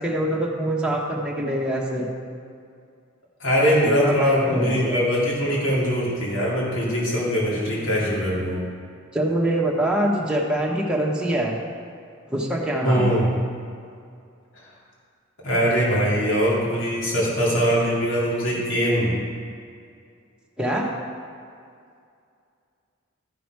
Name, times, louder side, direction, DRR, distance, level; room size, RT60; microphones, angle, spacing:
voice 1, 0.0-2.1 3.8-5.0 9.1-11.6 12.3-13.2 20.6-20.9, right 1 dB, 5° right, -3 dB, 1.2 m, -24 dB
voice 2, 3.4-8.6 12.8-13.3 15.4-19.1, equal, 85° left, -6 dB, 2.6 m, -22 dB
12.5 x 6.1 x 4.7 m, 2.3 s
head